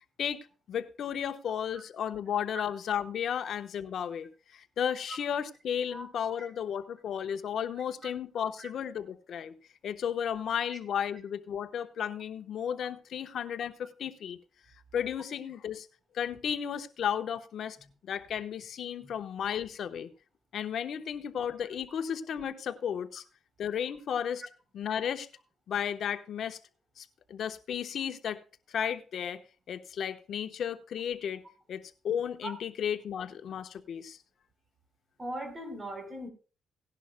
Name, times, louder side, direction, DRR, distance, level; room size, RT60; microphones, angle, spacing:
voice 1, 0.2-9.5 9.8-14.4 14.9-15.9 16.1-17.8 18.0-20.1 20.5-23.2 23.6-24.4 24.7-25.3 25.7-26.6 27.0-28.4 28.7-29.4 29.7-31.4 31.7-34.2, left 8 dB, 65° left, 1.0 m, -34 dB
voice 2, 35.2-36.3, right 1 dB, 30° right, 3.6 m, -39 dB
17.5 x 11.0 x 2.2 m
cardioid pair, 95°, 0 cm